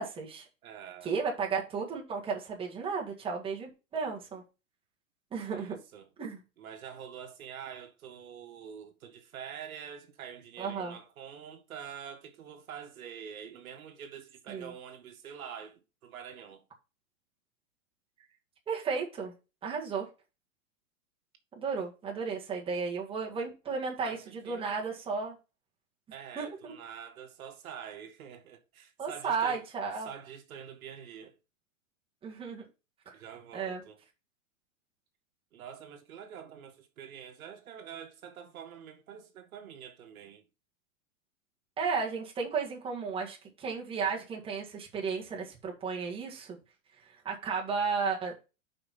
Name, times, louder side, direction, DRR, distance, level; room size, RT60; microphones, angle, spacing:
voice 1, 0.0-0.5 1.0-4.4 5.3-5.8 6.2-6.4 10.6-11.0 14.5-14.7 18.7-19.3 19.6-20.1 21.6-25.4 26.4-26.7 29.0-30.1 32.2-32.7 33.1-33.2 33.5-33.8 41.8-46.6 47.1-48.3, right 5 dB, 15° right, 1.7 m, -34 dB
voice 2, 0.6-1.1 5.5-6.1 6.6-16.6 24.0-24.8 26.1-29.6 30.0-31.4 33.1-34.0 35.5-40.4, right 8 dB, 80° right, 1.9 m, -46 dB
5.5 x 5.4 x 5.8 m
supercardioid pair, 155°, 42 cm